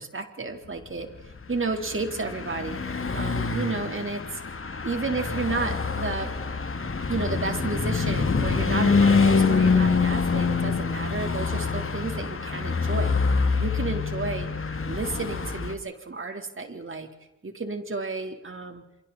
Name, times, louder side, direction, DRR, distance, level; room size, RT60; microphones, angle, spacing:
voice 1, 0.0-2.8 3.1-4.4 4.8-6.3 7.1-13.2 13.6-14.5 14.8-17.1 17.4-18.9, right 3 dB, 40° right, 5 dB, 4.2 m, -32 dB
Car passing by / Truck, 1.4-15.7, left 4 dB, 40° left, 2.6 m, -25 dB
28.5 x 24.5 x 4.4 m, 0.96 s
supercardioid pair, 50°, 32 cm